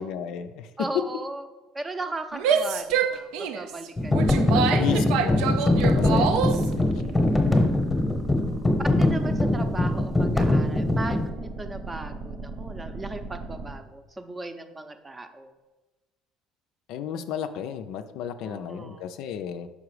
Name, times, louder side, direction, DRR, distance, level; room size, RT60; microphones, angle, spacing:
voice 1, 0.0-0.7 4.8-6.9 16.9-19.7, left 8 dB, 70° left, 9 dB, 0.4 m, -33 dB
voice 2, 0.8-1.5 1.7-5.2 6.2-6.9 8.8-15.6 18.4-19.1, right 2 dB, 20° right, 8 dB, 0.6 m, -37 dB
Female speech woman speaking / Yell, 2.3-6.7, right 7 dB, 80° right, 0.4 m, -26 dB
sound 1, 4.0-11.3, left 2 dB, 10° left, 0.9 m, -22 dB
sound 2, 5.7-13.7, right 3 dB, 50° right, 0.9 m, -37 dB
5.1 x 4.9 x 4.8 m, 1.1 s
cardioid pair, 105°, 0 cm